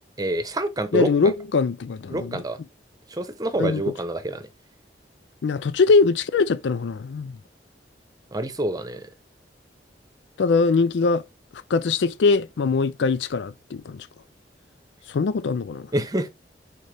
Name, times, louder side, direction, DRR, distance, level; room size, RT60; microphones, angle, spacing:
voice 1, 0.2-1.3 2.1-2.6 3.1-4.5 8.3-9.1 15.9-16.3, right 1 dB, 20° right, 0.9 m, -27 dB
voice 2, 0.9-2.4 3.6-3.8 5.4-7.4 10.4-11.2 11.7-14.1 15.1-15.9, left 4 dB, 85° left, 0.4 m, -22 dB
6.5 x 4.5 x 3.4 m
head